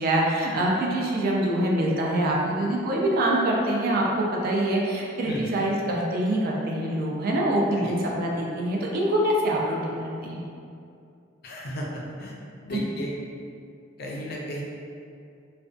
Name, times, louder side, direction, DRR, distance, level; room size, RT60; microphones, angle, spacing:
voice 1, 0.0-10.4 12.7-12.8, right 1 dB, 50° right, -2 dB, 0.4 m, -25 dB
voice 2, 7.8-8.1 11.4-12.3 12.7-13.1 14.0-14.6, equal, 55° left, -3 dB, 0.4 m, -34 dB
2.5 x 2.1 x 2.4 m, 2.4 s
head